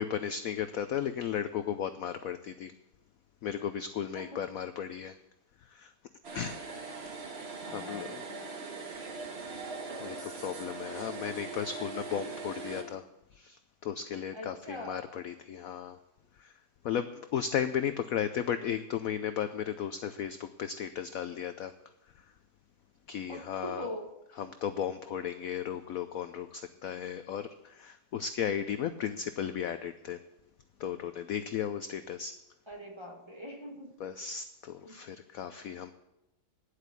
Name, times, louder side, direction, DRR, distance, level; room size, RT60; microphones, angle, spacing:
voice 1, 0.0-2.7 3.4-5.2 5.6-5.9 6.3-6.6 7.7-8.2 9.5-9.6 10.0-13.0 13.3-16.0 16.4-16.6 16.8-21.7 23.1-23.9 24.4-30.2 30.8-32.4 34.0-35.9, left 8 dB, 75° left, 11 dB, 0.8 m, -35 dB
voice 2, 4.1-4.5 7.6-8.6 14.3-15.1 23.3-24.5 32.7-34.0 34.8-35.0, equal, 15° right, 2 dB, 1.2 m, -43 dB
sound 1, 6.2-12.8, right 4 dB, 35° right, 1.5 m, -41 dB
10.0 x 8.1 x 8.3 m, 0.88 s
omnidirectional pair, 2.1 m